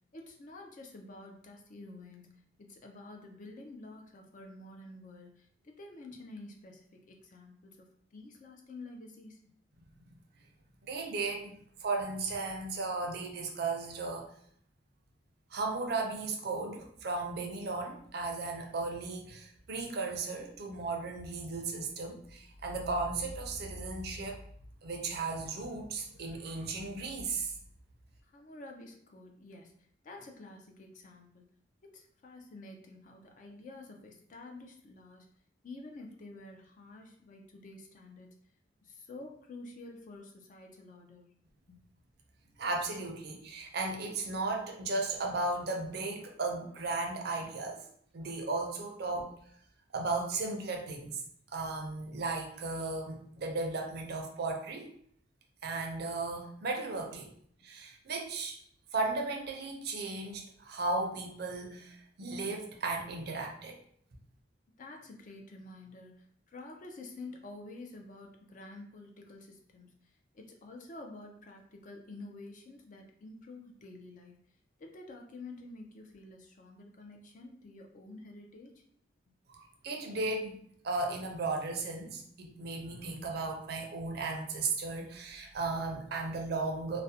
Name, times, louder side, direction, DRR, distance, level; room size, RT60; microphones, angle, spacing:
voice 1, 0.1-2.3 2.6-9.4 28.2-31.4 31.8-35.3 35.6-38.3 38.8-41.3 41.7-41.8 64.8-74.3 74.8-78.8, left 2 dB, 45° left, 2 dB, 0.4 m, -49 dB
voice 2, 10.9-11.5 11.8-14.3 15.5-24.4 24.8-27.5 42.6-47.8 48.1-49.3 49.9-51.2 51.5-54.9 55.6-57.3 57.6-58.6 58.9-63.8 79.5-80.6 80.8-87.0, right 3 dB, 55° right, 2 dB, 0.5 m, -35 dB
2.4 x 2.0 x 2.7 m, 0.65 s
head